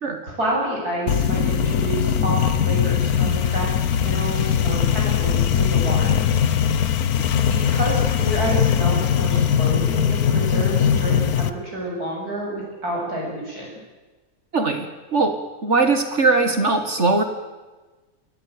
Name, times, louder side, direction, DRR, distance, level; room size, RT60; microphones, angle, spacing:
voice 1, 0.2-3.7 4.0-6.1 7.5-13.7, right 1 dB, 85° right, -3 dB, 8.7 m, -29 dB
sound 1, 1.1-11.5, left 8 dB, 80° left, 1.5 m, -20 dB
voice 2, 14.5-15.3 15.6-17.2, right 3 dB, 50° right, 7 dB, 2.0 m, -20 dB
22.5 x 17.0 x 9.5 m, 1.2 s
omnidirectional pair, 1.6 m